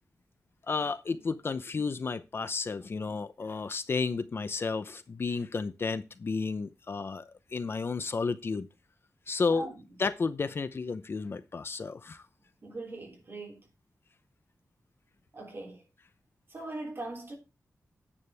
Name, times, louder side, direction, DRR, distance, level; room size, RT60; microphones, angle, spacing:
voice 1, 0.7-8.7 9.3-9.7 10.0-12.2, left 4 dB, 45° left, 0.7 m, -32 dB
voice 2, 9.5-9.8 12.6-13.7 15.3-15.9 16.5-17.3, right 2 dB, 40° right, 3.2 m, -40 dB
9.7 x 8.9 x 3.4 m
wide cardioid pair, 160°, 6 cm